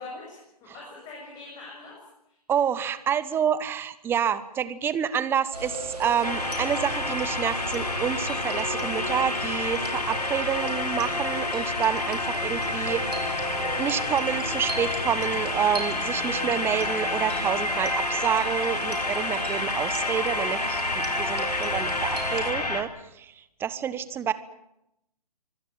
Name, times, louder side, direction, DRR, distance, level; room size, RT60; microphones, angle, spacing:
voice 1, 0.0-2.4, left 3 dB, 20° left, -2 dB, 7.6 m, -43 dB
voice 2, 2.5-13.1 13.6-24.3, right 8 dB, 10° right, 16 dB, 1.1 m, -28 dB
sound 1, 5.5-22.5, right 2 dB, 75° right, 6.2 m, -37 dB
sound 2, 6.2-22.8, left 2 dB, 80° left, 3.9 m, -29 dB
25.0 x 17.0 x 9.1 m, 0.84 s
figure-of-eight pair, 130°, 20 cm